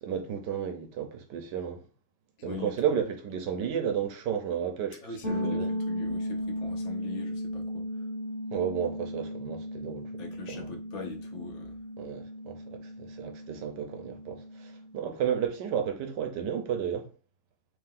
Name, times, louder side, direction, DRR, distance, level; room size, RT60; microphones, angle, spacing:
voice 1, 0.0-1.8 2.4-5.7 8.5-10.2 10.5-10.7 12.0-17.1, right 8 dB, 70° right, 1.3 m, -32 dB
voice 2, 2.4-2.7 5.0-7.9 10.2-11.7, left 4 dB, 85° left, 1.7 m, -41 dB
sound 1, 5.2-14.9, equal, 35° left, 1.2 m, -36 dB
3.4 x 3.4 x 3.6 m
omnidirectional pair, 2.0 m